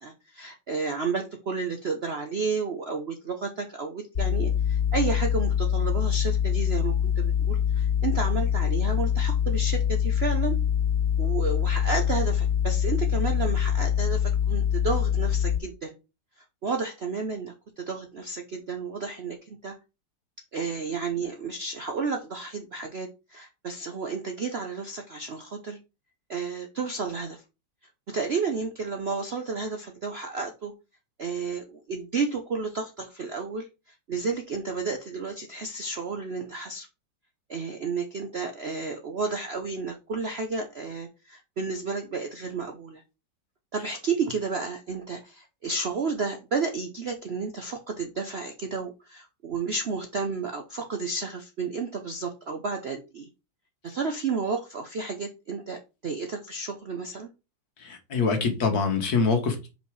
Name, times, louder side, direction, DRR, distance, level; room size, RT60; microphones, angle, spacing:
voice 1, 0.0-10.6 11.2-15.9 16.6-19.8 20.5-25.8 26.3-27.4 28.1-30.7 31.2-33.7 34.1-36.9 37.5-43.0 43.7-53.3 53.8-57.3, right 4 dB, 55° right, 4 dB, 0.7 m, -32 dB
sound 1, 4.1-15.6, left 9 dB, 35° left, 2.5 m, -24 dB
voice 2, 57.8-59.7, left 4 dB, 60° left, 5 dB, 1.8 m, -25 dB
5.5 x 4.6 x 4.7 m, 0.28 s
omnidirectional pair, 2.0 m